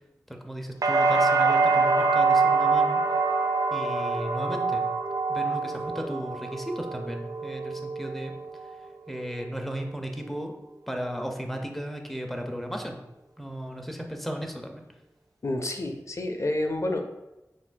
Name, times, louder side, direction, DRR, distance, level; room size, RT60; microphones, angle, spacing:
voice 1, 0.3-3.0 3.7-4.8 5.3-8.3 9.1-10.5 10.9-13.0 13.4-14.8, equal, 5° left, 3 dB, 0.6 m, -35 dB
sound 1, 0.8-8.7 9.1-9.8, right 4 dB, 70° right, 0.4 m, -25 dB
voice 2, 15.4-17.0, left 1 dB, 50° left, 5 dB, 0.4 m, -29 dB
5.7 x 2.5 x 2.2 m, 0.96 s
wide cardioid pair, 40°, 6 cm